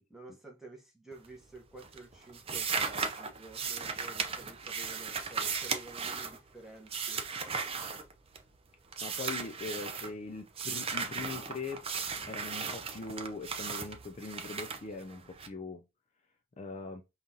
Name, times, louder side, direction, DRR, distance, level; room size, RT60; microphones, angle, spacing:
voice 1, 0.0-7.2, right 2 dB, ahead, 0.9 m, -51 dB
sound 1, 1.1-1.5 1.8-8.6 8.9-10.1 10.5-15.5, right 5 dB, 25° right, 0.5 m, -36 dB
voice 2, 9.0-11.8 12.3-15.8 16.6-17.0, left 3 dB, 30° left, 0.4 m, -41 dB
5.3 x 2.5 x 2.7 m
head